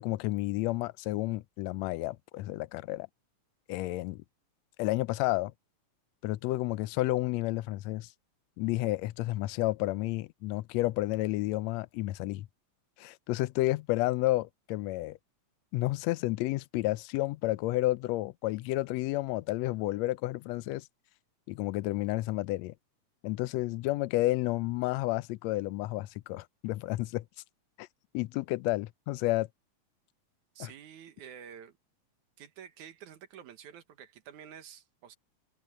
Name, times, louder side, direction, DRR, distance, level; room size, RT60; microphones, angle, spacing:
voice 1, 0.0-3.1 3.7-4.2 4.8-5.5 6.2-8.1 8.6-12.5 13.0-15.2 15.7-20.9 21.5-22.7 23.2-27.3 27.8-27.9 28.1-29.5 30.6-30.7, left 18 dB, 75° left, 1.7 m, -31 dB
voice 2, 30.6-31.8 32.4-35.2, right 8 dB, 90° right, 2.9 m, -49 dB
omnidirectional pair, 3.3 m